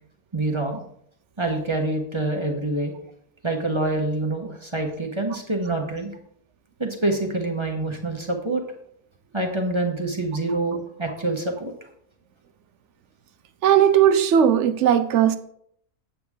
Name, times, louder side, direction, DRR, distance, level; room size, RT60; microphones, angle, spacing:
voice 1, 0.3-0.8 1.4-2.9 3.4-6.1 6.8-8.6 9.3-11.7, right 2 dB, 20° right, 1.0 m, -26 dB
voice 2, 13.6-15.4, right 9 dB, 70° right, 0.7 m, -17 dB
8.9 x 7.7 x 3.6 m
omnidirectional pair, 1.6 m